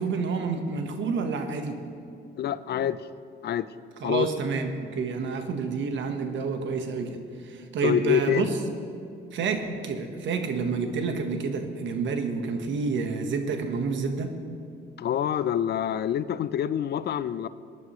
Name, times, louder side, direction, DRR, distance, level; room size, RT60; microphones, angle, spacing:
voice 1, 0.0-1.8 4.0-8.5 9.3-14.4, right 4 dB, 70° right, 6 dB, 1.3 m, -29 dB
voice 2, 2.4-3.0 3.4-3.7 4.0-4.3 7.8-8.5 15.0-17.5, left 9 dB, 55° left, 15 dB, 0.5 m, -26 dB
19.0 x 10.5 x 3.1 m, 2.5 s
cardioid pair, 90°, 20 cm